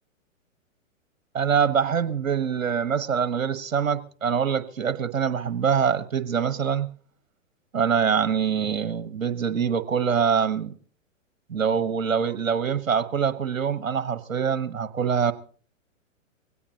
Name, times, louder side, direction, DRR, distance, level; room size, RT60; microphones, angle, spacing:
voice 1, 1.3-6.9 7.7-10.7 11.5-15.3, right 7 dB, 80° right, 12 dB, 1.3 m, -24 dB
22.0 x 17.5 x 2.8 m, 0.43 s
hypercardioid pair, 115°, 39 cm